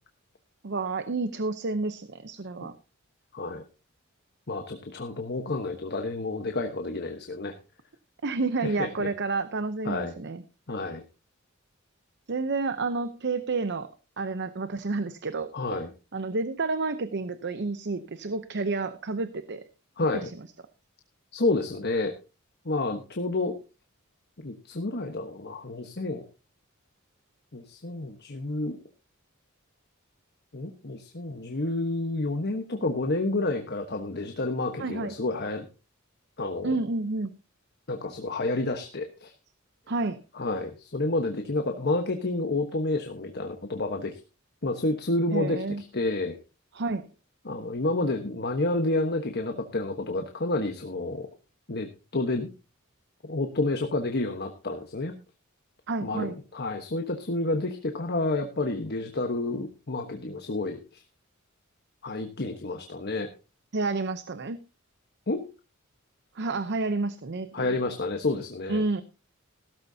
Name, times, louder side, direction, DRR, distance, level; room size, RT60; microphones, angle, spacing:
voice 1, 0.6-2.7 8.2-10.4 12.3-15.8 16.1-19.6 20.1-20.3 34.8-35.1 36.6-37.3 39.9-40.2 45.3-45.8 46.7-47.0 55.9-56.3 63.7-64.6 66.3-67.8 68.7-69.0, right 3 dB, 55° right, 12 dB, 0.7 m, -30 dB
voice 2, 3.3-3.6 4.5-7.6 8.6-9.1 9.8-10.1 10.7-11.0 15.5-15.9 20.0-20.3 21.3-22.2 22.6-23.6 24.4-26.2 27.5-28.8 30.5-35.6 36.4-36.7 37.9-39.3 40.3-44.2 44.6-45.6 45.9-46.4 47.4-51.3 51.7-51.9 52.1-52.5 53.2-55.1 56.0-60.8 62.0-63.3 65.3-65.4 67.5-68.8, left 2 dB, 50° left, 5 dB, 1.2 m, -29 dB
16.0 x 13.5 x 2.8 m, 0.30 s
head